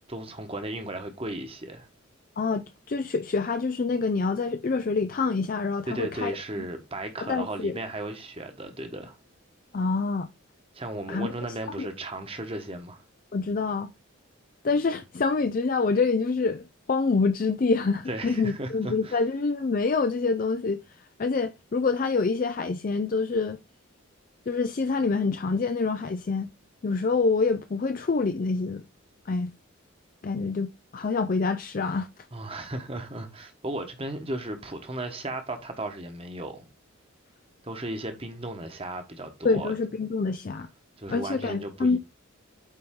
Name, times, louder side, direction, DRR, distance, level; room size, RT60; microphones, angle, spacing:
voice 1, 0.1-1.9 5.9-9.2 10.7-13.0 18.1-19.2 32.3-36.7 37.6-39.7 41.0-42.0, right 1 dB, 25° right, 1.2 m, -35 dB
voice 2, 2.4-6.3 7.2-7.8 9.7-10.3 11.1-11.3 11.8-11.9 13.3-13.9 14.6-23.6 24.5-26.5 26.8-28.8 29.3-29.5 30.2-32.1 39.4-40.7 41.1-42.0, left 4 dB, 40° left, 0.4 m, -26 dB
8.7 x 3.9 x 3.7 m
head